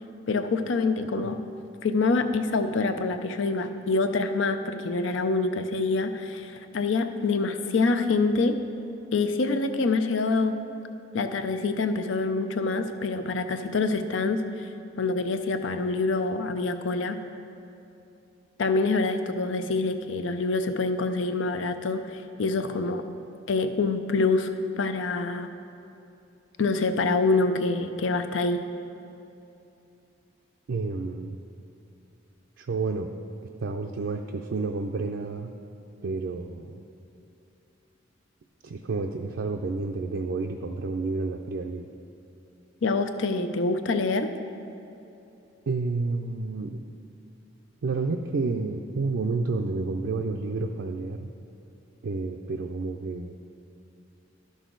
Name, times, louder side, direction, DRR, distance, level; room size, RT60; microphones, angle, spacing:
voice 1, 0.3-1.3 1.8-8.6 9.1-10.5 11.1-14.7 15.0-17.2 18.6-23.0 23.5-25.5 26.6-28.6 42.8-44.3, left 3 dB, 80° left, 9 dB, 0.5 m, -26 dB
voice 2, 30.7-31.4 32.6-33.1 33.6-35.5 36.0-36.8 38.6-41.9 45.7-46.8 47.8-51.3 52.0-53.3, right 3 dB, 70° right, 3 dB, 0.4 m, -30 dB
12.0 x 6.3 x 3.9 m, 2.8 s
head